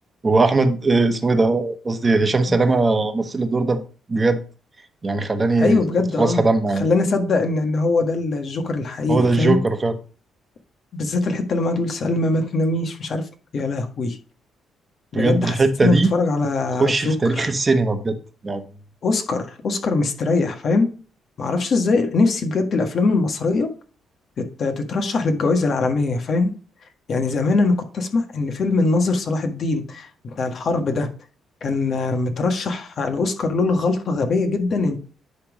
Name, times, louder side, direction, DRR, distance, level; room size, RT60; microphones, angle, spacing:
voice 1, 0.2-3.8 4.1-4.4 5.0-5.8 6.2-6.9 9.1-10.0 15.1-16.1 16.8-18.2 18.4-18.6, right 3 dB, 25° right, 1.2 m, -19 dB
voice 2, 5.6-6.4 6.8-9.6 10.9-13.2 13.5-14.2 15.1-15.6 15.8-17.5 19.0-20.9 21.4-23.7 24.4-26.5 27.1-31.1 31.6-35.0, left 3 dB, 55° left, 1.5 m, -22 dB
10.5 x 3.5 x 5.0 m
cardioid pair, 90°, 0 cm